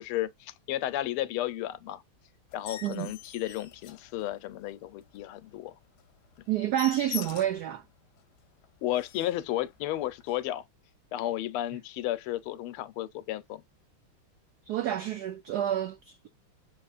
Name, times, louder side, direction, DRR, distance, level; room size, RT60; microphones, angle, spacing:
voice 1, 0.0-2.0 2.5-5.7 8.8-10.6 11.1-13.6, left 14 dB, 90° left, 1.5 m, -33 dB
sound 1, 2.5-4.6 5.1-5.2 5.6-5.7 6.0-6.1 6.4-7.7 8.2-8.3 8.6-8.7 8.9-9.5 10.2-10.4, left 10 dB, 65° left, 1.1 m, -43 dB
voice 2, 6.5-7.8 14.7-16.3, right 12 dB, 90° right, 0.8 m, -29 dB
6.8 x 3.0 x 2.3 m
omnidirectional pair, 2.3 m